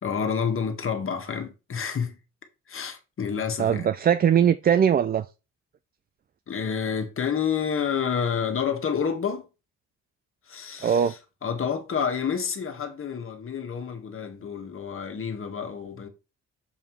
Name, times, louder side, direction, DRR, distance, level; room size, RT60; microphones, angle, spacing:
voice 1, 0.0-2.2 2.7-3.9 6.5-9.4 10.5-16.1, left 7 dB, 45° left, 1.6 m, -29 dB
voice 2, 3.6-5.3 10.8-11.1, right 8 dB, 30° right, 0.4 m, -20 dB
7.0 x 3.6 x 4.6 m
cardioid pair, 90°, 30 cm